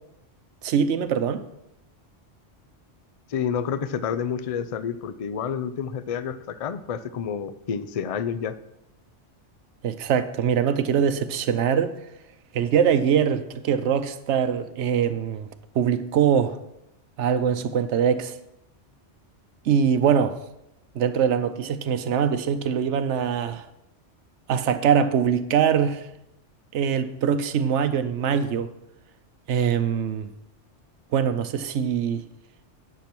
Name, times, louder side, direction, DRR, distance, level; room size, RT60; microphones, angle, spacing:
voice 1, 0.6-1.4 9.8-11.9 12.5-15.5 15.7-16.6 17.2-18.3 19.6-20.4 20.9-23.7 24.5-26.1 26.7-28.7 29.5-30.3 31.1-32.2, right 8 dB, 75° right, 1.0 m, -23 dB
voice 2, 3.3-8.6, left 7 dB, 50° left, 0.4 m, -29 dB
10.5 x 6.0 x 6.0 m
omnidirectional pair, 1.2 m